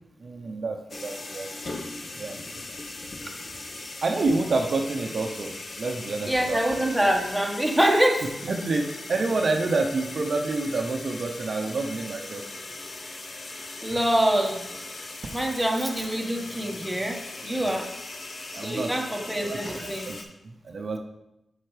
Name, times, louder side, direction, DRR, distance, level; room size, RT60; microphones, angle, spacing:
voice 1, 0.2-1.8 2.2-2.4 4.0-6.6 8.4-12.4 17.6-17.8 18.5-18.9 19.3-20.2 20.6-21.0, right 3 dB, 65° right, 2 dB, 0.7 m, -28 dB
sound 1, 0.9-20.2, left 2 dB, 60° left, 0.9 m, -39 dB
voice 2, 6.2-8.3 13.8-14.7 15.3-17.9 18.6-20.1, right 1 dB, 10° right, 1 dB, 1.4 m, -25 dB
8.1 x 5.8 x 3.3 m, 0.89 s
supercardioid pair, 45°, 0 cm